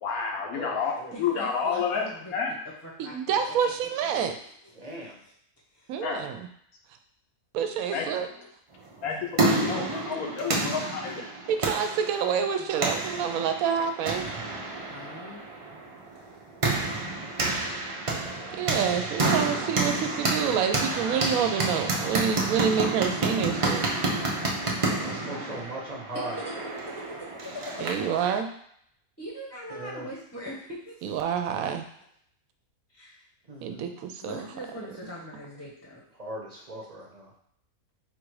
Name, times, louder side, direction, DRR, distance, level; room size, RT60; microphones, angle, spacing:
voice 1, 0.0-2.0 2.3-2.6 6.0-6.3 7.9-8.5 9.0-11.3, left 6 dB, 75° left, 1 dB, 1.1 m, -30 dB
voice 2, 0.5-1.1 4.7-5.2 25.0-26.4 29.7-30.1 33.5-33.9 36.2-37.3, right 2 dB, 35° right, -2 dB, 0.8 m, -38 dB
voice 3, 1.1-2.3 2.8-3.1 3.5-3.7 4.4-4.9 5.2-5.3 5.7-6.0 7.8-7.9 12.4-12.5 14.9-15.4 16.1-16.4 25.1-25.7 26.1-26.5 27.2-27.3 27.6-27.7 29.2-31.2 31.6-31.7 32.9-33.2 34.2-36.0, equal, 10° left, -5 dB, 0.8 m, -42 dB
voice 4, 3.0-4.3 5.9-6.4 7.5-8.3 11.5-14.3 18.6-23.8 27.8-28.5 31.0-31.9 33.6-34.5, right 7 dB, 75° right, 6 dB, 1.0 m, -28 dB
sound 1, 8.9-28.2, right 2 dB, 50° right, 0.4 m, -29 dB
4.2 x 2.5 x 4.7 m, 0.68 s
omnidirectional pair, 1.6 m